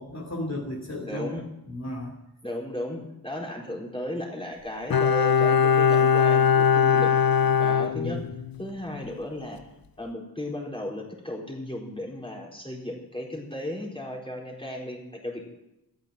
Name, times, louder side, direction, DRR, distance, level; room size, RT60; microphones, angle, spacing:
voice 1, 0.0-1.3 1.6-2.2 7.9-8.2, left 1 dB, 45° left, -2 dB, 2.5 m, -34 dB
voice 2, 1.1-1.4 2.4-7.1 7.6-8.2 8.6-9.6 10.0-15.4, left 1 dB, 15° left, -2 dB, 4.2 m, -35 dB
Bowed string instrument, 4.9-8.6 8.9-9.0, left 7 dB, 65° left, 0.6 m, -21 dB
13.0 x 9.5 x 9.1 m, 0.89 s
wide cardioid pair, 50°, 39 cm